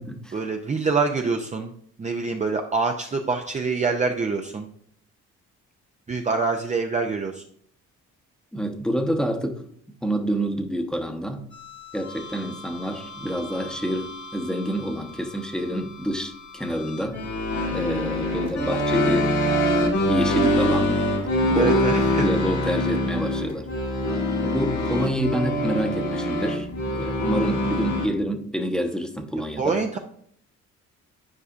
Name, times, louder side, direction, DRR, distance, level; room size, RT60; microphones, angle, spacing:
voice 1, 0.3-1.7 2.0-4.7 6.1-7.4 21.6-22.2 29.6-30.0, right 4 dB, 25° right, 3 dB, 0.6 m, -25 dB
voice 2, 8.5-9.6 10.0-11.4 11.9-17.2 17.7-19.3 19.8-21.0 21.4-23.7 24.4-29.8, equal, ahead, 4 dB, 0.9 m, -27 dB
sound 1, 11.5-28.1, left 1 dB, 70° left, 1.6 m, -25 dB
9.7 x 4.8 x 2.5 m, 0.63 s
cardioid pair, 90°, 30 cm